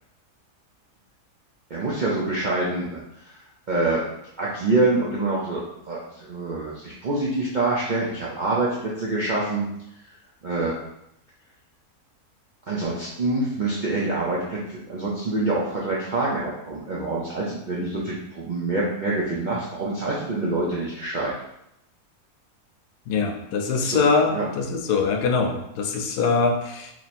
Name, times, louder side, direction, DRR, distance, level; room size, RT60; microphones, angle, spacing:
voice 1, 1.7-3.4 3.7-4.0 4.4-9.7 10.4-10.7 12.7-21.3 23.8-24.0 24.3-24.5, right 2 dB, 75° right, -6 dB, 0.4 m, -26 dB
voice 2, 23.1-26.9, left 4 dB, 85° left, 4 dB, 1.2 m, -23 dB
3.1 x 2.8 x 4.1 m, 0.79 s
omnidirectional pair, 1.7 m